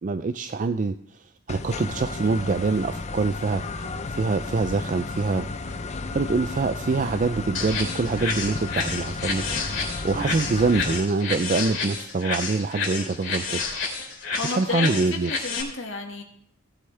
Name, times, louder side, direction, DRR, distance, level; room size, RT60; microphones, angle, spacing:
voice 1, 0.0-1.0 1.5-5.5 6.1-9.4 10.0-13.6 14.5-15.3, right 3 dB, 40° right, 9 dB, 0.4 m, -25 dB
sound 1, 1.5-11.0, left 3 dB, 35° left, 0.5 m, -33 dB
sound 2, 1.9-2.0 2.4-3.4 3.8-4.9 5.2-7.2, right 2 dB, 65° right, 1.2 m, -47 dB
sound 3, 7.5-15.6, left 4 dB, 65° left, 3.1 m, -30 dB
voice 2, 10.2-10.6 14.2-16.2, left 3 dB, 80° left, 3 dB, 1.8 m, -32 dB
18.5 x 7.8 x 3.3 m, 0.67 s
head